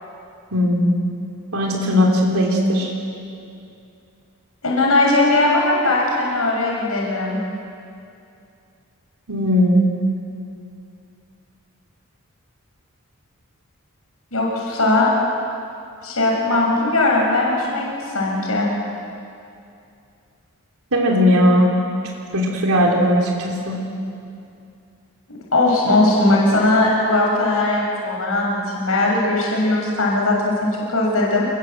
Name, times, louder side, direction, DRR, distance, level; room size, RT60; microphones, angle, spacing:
voice 1, 0.5-0.9 1.5-2.9 9.3-9.9 20.9-21.7 22.3-23.8, equal, 75° right, -1 dB, 3.5 m, -17 dB
voice 2, 4.6-7.4 14.3-15.1 16.0-18.7 25.5-31.5, left 2 dB, 70° left, -3 dB, 6.5 m, -19 dB
29.0 x 21.0 x 7.8 m, 2.5 s
head